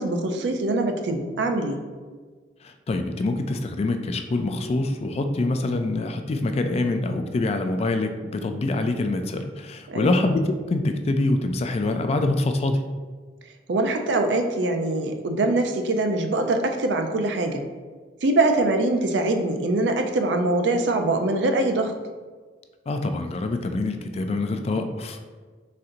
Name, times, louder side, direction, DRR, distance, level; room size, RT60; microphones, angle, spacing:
voice 1, 0.0-1.8 9.9-10.2 13.7-17.6 18.2-21.9, right 2 dB, 85° right, 5 dB, 0.5 m, -23 dB
voice 2, 2.6-12.8 22.9-25.2, left 2 dB, 35° left, 7 dB, 0.3 m, -25 dB
4.2 x 3.8 x 2.5 m, 1.5 s
head